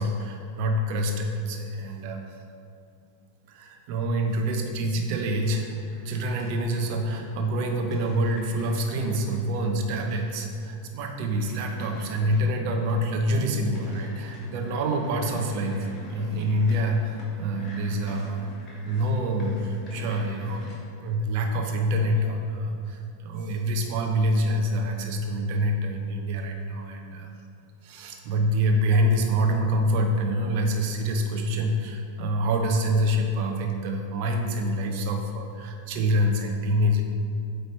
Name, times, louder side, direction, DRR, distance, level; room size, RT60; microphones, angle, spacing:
voice 1, 0.0-2.2 3.5-18.5 18.8-27.3 27.8-37.0, equal, 45° right, 3 dB, 0.7 m, -26 dB
sound 1, 5.2-20.8, left 1 dB, 25° left, 1.5 m, -47 dB
8.1 x 3.2 x 4.3 m, 2.4 s
figure-of-eight pair, 90°, 0 cm